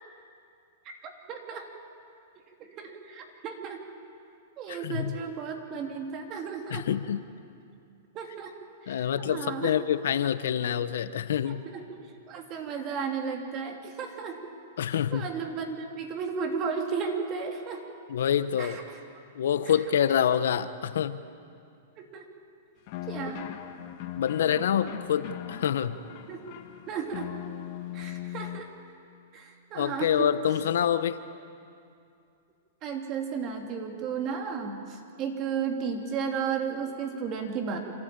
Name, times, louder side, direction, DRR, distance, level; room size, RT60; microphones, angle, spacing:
voice 1, 0.8-1.6 2.6-3.8 4.6-6.8 8.1-8.5 8.8-9.8 11.5-11.8 12.3-14.4 15.1-17.8 18.6-18.7 22.0-22.3 23.1-23.5 26.3-26.5 26.9-27.3 27.9-28.7 29.3-30.3 32.8-34.8 35.2-37.8, right 6 dB, 35° right, 3 dB, 3.0 m, -34 dB
voice 2, 4.7-5.2 6.7-7.3 8.9-11.6 14.8-15.3 18.1-18.8 19.3-21.2 24.0-26.0 29.7-31.2, left 9 dB, 75° left, 13 dB, 0.9 m, -27 dB
sound 1, 22.9-28.6, left 12 dB, 50° left, 1.7 m, -39 dB
27.5 x 13.5 x 8.9 m, 2.5 s
hypercardioid pair, 130°, 0 cm